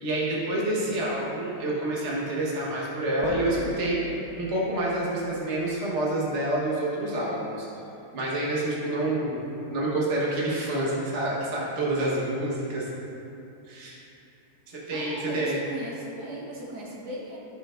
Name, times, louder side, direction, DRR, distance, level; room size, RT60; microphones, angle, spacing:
voice 1, 0.0-7.7 8.1-9.4 9.7-12.9 13.7-13.9 14.7-15.6, right 1 dB, 45° right, -5 dB, 1.5 m, -28 dB
sound 1, 0.6-0.9 3.2-5.9, left 4 dB, 70° left, 1.1 m, -39 dB
voice 2, 14.9-17.4, right 1 dB, 70° right, -4 dB, 2.0 m, -37 dB
16.0 x 5.5 x 2.5 m, 2.8 s
omnidirectional pair, 1.8 m